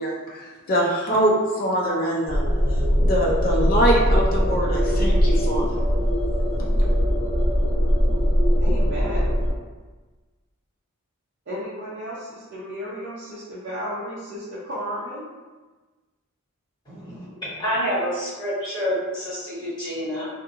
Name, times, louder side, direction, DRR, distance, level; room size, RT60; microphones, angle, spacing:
voice 1, 0.0-2.4 2.7-5.8 6.6-6.7, right 1 dB, 40° left, -3 dB, 0.4 m, -24 dB
sound 1, 2.3-9.5, equal, 35° right, 1.2 m, -21 dB
voice 2, 8.6-9.3 11.5-15.3, equal, 50° right, -10 dB, 0.6 m, -33 dB
voice 3, 16.9-17.2 17.5-20.3, equal, 20° left, -12 dB, 1.4 m, -27 dB
2.7 x 2.5 x 2.5 m, 1.3 s
head